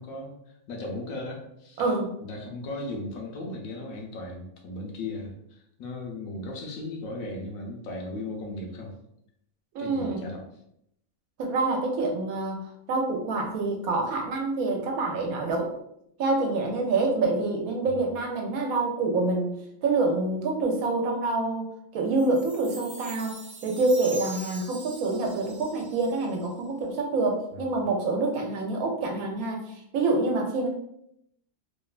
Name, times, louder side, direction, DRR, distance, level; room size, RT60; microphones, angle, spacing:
voice 1, 0.0-1.9 2.2-8.9 9.8-10.4 18.0-18.1 27.5-27.9, left 2 dB, 75° left, 0 dB, 1.1 m, -37 dB
voice 2, 1.8-2.1 9.7-10.3 11.4-15.7 16.2-19.5 19.8-30.7, right 3 dB, 90° right, 1 dB, 1.1 m, -27 dB
Chime, 22.2-26.6, right 2 dB, 55° right, 0.3 m, -43 dB
3.0 x 2.1 x 2.3 m, 0.75 s
omnidirectional pair, 1.5 m